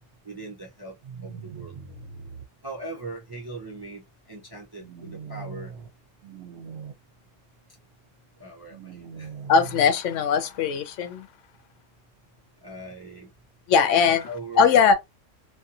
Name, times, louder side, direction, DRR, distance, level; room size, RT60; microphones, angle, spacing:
voice 1, 0.2-0.9 1.2-1.7 2.6-5.7 8.4-9.3 12.6-13.3 13.8-14.9, right 2 dB, 35° right, 0.3 m, -40 dB
sound 1, 1.0-2.4 4.8-5.9 6.2-6.9 8.7-9.9, right 6 dB, 65° right, 0.8 m, -40 dB
voice 2, 9.5-11.3 13.7-14.3 14.6-14.9, left 6 dB, 75° left, 0.9 m, -20 dB
2.6 x 2.4 x 2.4 m
omnidirectional pair, 1.3 m